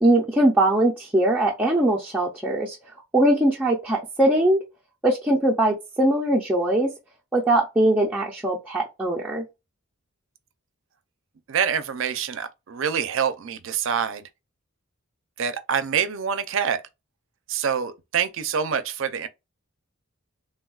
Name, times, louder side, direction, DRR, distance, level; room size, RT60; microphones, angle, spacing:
voice 1, 0.0-2.8 3.1-4.6 5.0-6.9 7.3-9.4, right 1 dB, 5° right, 0.5 m, -21 dB
voice 2, 11.5-14.2 15.4-16.8 17.5-19.3, right 7 dB, 60° right, 0.4 m, -26 dB
3.3 x 2.2 x 2.3 m
head